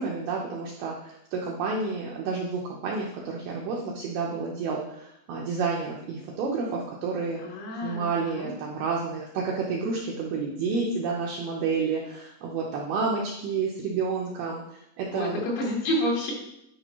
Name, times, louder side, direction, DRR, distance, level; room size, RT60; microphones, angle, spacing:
voice 1, 0.0-7.4 7.8-15.4, right 4 dB, 80° right, -2 dB, 2.2 m, -30 dB
voice 2, 7.4-8.5 15.1-16.3, left 1 dB, 70° left, -3 dB, 3.7 m, -29 dB
10.5 x 5.1 x 3.0 m, 0.81 s
omnidirectional pair, 5.5 m